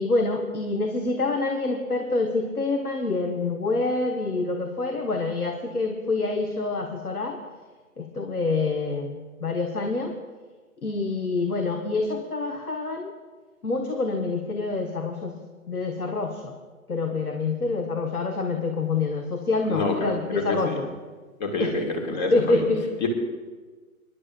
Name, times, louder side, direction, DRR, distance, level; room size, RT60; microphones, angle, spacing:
voice 1, 0.0-7.4 8.0-10.1 10.8-13.1 13.6-16.6 16.9-20.8 21.6-21.7 22.3-22.8, left 3 dB, 80° left, 4 dB, 1.4 m, -26 dB
voice 2, 19.7-20.8 21.4-22.6 23.0-23.1, left 3 dB, 30° left, 2 dB, 2.3 m, -27 dB
25.5 x 11.0 x 2.5 m, 1.4 s
figure-of-eight pair, 140°, 44 cm